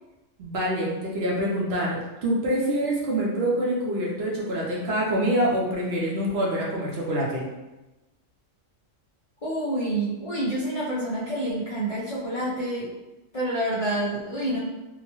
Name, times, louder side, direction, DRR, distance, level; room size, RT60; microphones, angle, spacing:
voice 1, 0.4-7.4, right 1 dB, 60° right, -4 dB, 0.8 m, -26 dB
voice 2, 9.4-12.9 13.3-14.6, right 1 dB, 50° left, -8 dB, 0.4 m, -28 dB
2.8 x 2.2 x 2.9 m, 1.0 s
omnidirectional pair, 1.4 m